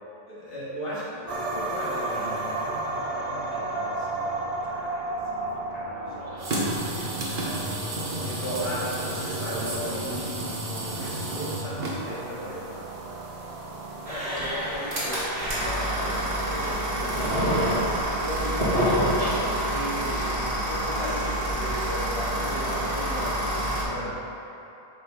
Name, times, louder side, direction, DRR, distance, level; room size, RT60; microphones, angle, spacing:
voice 1, 0.3-12.7 23.8-24.2, equal, 65° left, -9 dB, 1.8 m, -37 dB
sound 1, 1.3-16.5, right 2 dB, 45° right, 0.5 m, -34 dB
sound 2, 6.4-14.3, right 1 dB, 70° right, 1.1 m, -33 dB
voice 2, 14.0-17.8 18.1-20.2 20.7-23.6, left 1 dB, 35° left, -6 dB, 1.1 m, -36 dB
sound 3, 14.1-23.8, right 1 dB, 90° right, 1.8 m, -27 dB
7.6 x 5.3 x 2.5 m, 3.0 s
omnidirectional pair, 1.1 m